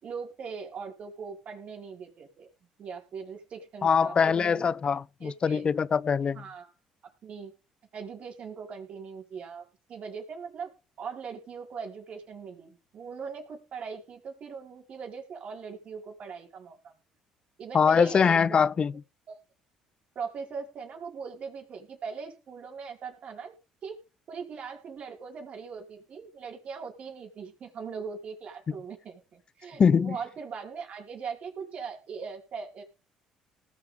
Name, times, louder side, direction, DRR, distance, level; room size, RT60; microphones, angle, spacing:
voice 1, 0.0-2.5 2.8-4.7 5.2-5.7 6.3-6.7 7.0-7.5 7.9-10.7 11.0-16.9 17.6-18.7 19.3-19.4 20.1-23.5 23.8-24.0 24.3-32.8, right 5 dB, 55° right, 5.1 m, -40 dB
voice 2, 3.8-6.4 17.7-18.9 29.8-30.2, left 6 dB, 40° left, 0.5 m, -23 dB
19.0 x 7.2 x 3.7 m
hypercardioid pair, 65°, 3 cm